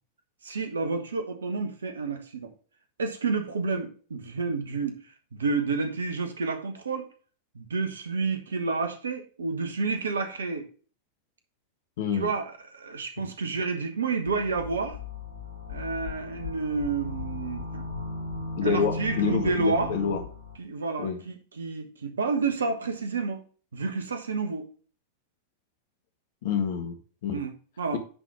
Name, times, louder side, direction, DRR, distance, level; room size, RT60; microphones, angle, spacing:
voice 1, 0.4-2.5 3.0-5.0 5.3-7.1 7.5-10.7 12.1-15.0 15.7-17.9 18.6-19.9 20.6-23.4 23.7-24.7 27.3-28.0, right 4 dB, 70° right, 7 dB, 1.2 m, -30 dB
voice 2, 12.0-12.3 18.6-20.2 21.0-21.2 26.4-27.4 27.9-28.0, left 6 dB, 55° left, 6 dB, 1.4 m, -28 dB
sound 1, 14.2-20.6, left 2 dB, 90° right, 3.4 m, -36 dB
9.8 x 4.2 x 4.7 m, 0.40 s
figure-of-eight pair, 90°, 0 cm